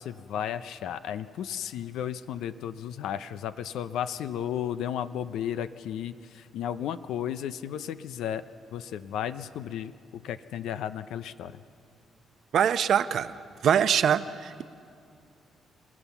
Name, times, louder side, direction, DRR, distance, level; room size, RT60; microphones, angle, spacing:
voice 1, 0.0-8.4 8.7-11.6, left 10 dB, 80° left, 12 dB, 0.5 m, -34 dB
voice 2, 12.5-13.3 13.6-14.6, right 8 dB, 65° right, 12 dB, 0.7 m, -23 dB
28.5 x 15.0 x 7.1 m, 2.5 s
cardioid pair, 90°, 0 cm